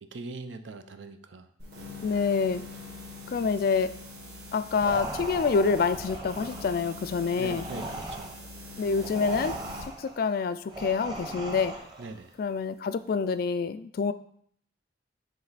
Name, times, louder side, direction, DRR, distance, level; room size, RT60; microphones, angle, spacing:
voice 1, 0.0-1.5 7.3-8.3 12.0-12.3, right 3 dB, 80° right, 8 dB, 0.6 m, -41 dB
sound 1, 1.6-9.9, left 2 dB, 65° right, 2.2 m, -43 dB
voice 2, 2.0-2.6 3.3-3.9 4.5-7.7 8.8-9.5 10.0-11.7 12.4-14.1, left 5 dB, 50° left, 12 dB, 0.3 m, -27 dB
sound 2, 4.8-12.2, right 1 dB, 20° right, 0.9 m, -39 dB
7.5 x 3.2 x 4.0 m, 0.63 s
head